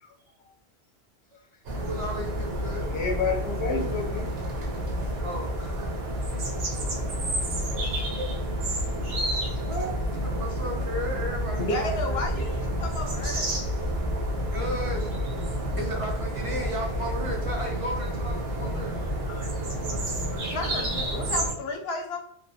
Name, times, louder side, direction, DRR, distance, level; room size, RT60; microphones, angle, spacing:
sound 1, 1.6-21.5, equal, 70° right, 0.9 m, -29 dB
voice 1, 1.8-2.9 5.2-5.9 7.3-7.4 7.7-7.9 8.2-8.8 9.7-12.4 14.5-15.1 15.8-19.0, equal, 50° right, 0 dB, 0.4 m, -35 dB
voice 2, 2.9-4.3 19.2-19.5 19.9-20.0 20.3-20.5 20.7-20.9, left 4 dB, 35° left, -1 dB, 0.6 m, -30 dB
voice 3, 11.6-13.5 20.5-22.2, left 2 dB, 70° left, 2 dB, 0.8 m, -32 dB
2.7 x 2.4 x 2.6 m, 0.64 s
omnidirectional pair, 1.1 m